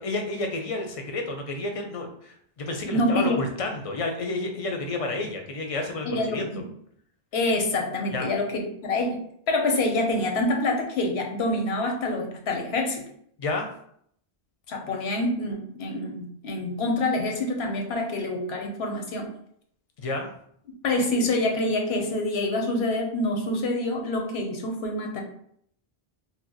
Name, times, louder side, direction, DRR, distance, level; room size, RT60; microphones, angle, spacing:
voice 1, 0.0-6.5 8.1-8.3 13.4-13.7 20.0-20.3, left 2 dB, 45° left, 3 dB, 0.5 m, -30 dB
voice 2, 2.8-3.4 6.1-6.6 7.3-13.0 14.7-19.3 20.8-25.2, left 2 dB, 90° left, 3 dB, 1.0 m, -26 dB
2.9 x 2.1 x 3.9 m, 0.67 s
omnidirectional pair, 1.0 m